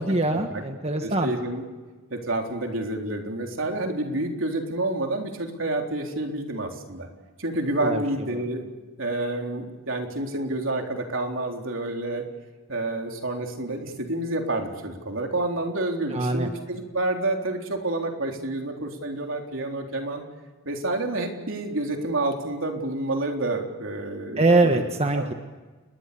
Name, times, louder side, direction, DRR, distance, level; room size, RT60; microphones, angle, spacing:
voice 1, 0.0-1.3 7.8-8.0 8.3-8.4 16.1-16.5 24.4-25.3, right 2 dB, 30° right, 5 dB, 1.5 m, -23 dB
voice 2, 1.0-1.6 2.1-7.1 7.4-8.6 9.0-12.2 12.7-20.2 20.6-24.8 25.1-25.3, right 2 dB, 70° right, 2 dB, 4.0 m, -29 dB
29.5 x 21.0 x 7.1 m, 1.3 s
head